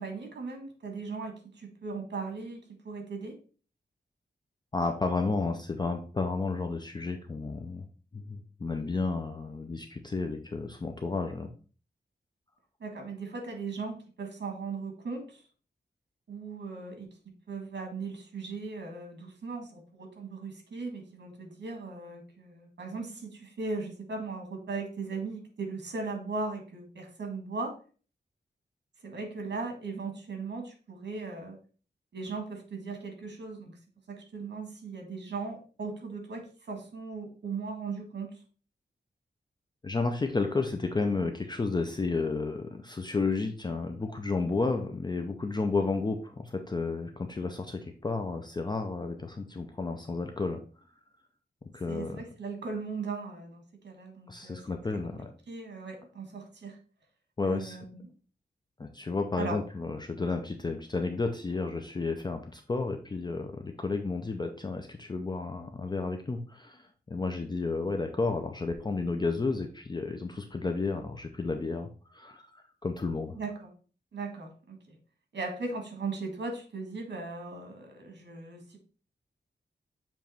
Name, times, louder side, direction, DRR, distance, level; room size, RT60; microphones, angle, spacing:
voice 1, 0.0-3.4 12.8-15.4 16.3-17.2 17.5-27.8 29.0-31.6 32.1-33.8 34.1-38.4 45.7-45.8 51.9-54.6 55.5-56.8 57.4-58.1 59.4-59.6 73.4-73.7 74.1-75.0 75.3-78.8, right 4 dB, 75° right, 3 dB, 1.8 m, -38 dB
voice 2, 4.7-7.9 8.1-11.5 39.8-50.6 51.7-52.2 54.3-55.3 57.4-57.8 58.8-73.3, left 3 dB, 25° left, 5 dB, 0.5 m, -32 dB
7.2 x 3.0 x 4.3 m, 0.39 s
wide cardioid pair, 160°, 18 cm